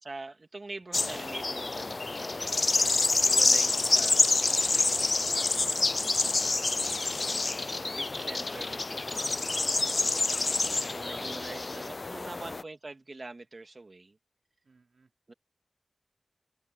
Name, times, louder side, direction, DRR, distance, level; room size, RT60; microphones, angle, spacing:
voice 1, 0.0-2.8 3.2-4.3 5.3-9.4 9.9-14.2 15.3-15.4, right 2 dB, 50° right, 2.8 m, -45 dB
sound 1, 0.9-12.6, left 3 dB, 50° left, 0.4 m, -27 dB
voice 2, 9.1-10.0 10.6-12.5 14.6-15.1, right 4 dB, 80° right, 3.1 m, -54 dB
open air
wide cardioid pair, 75°, 0 cm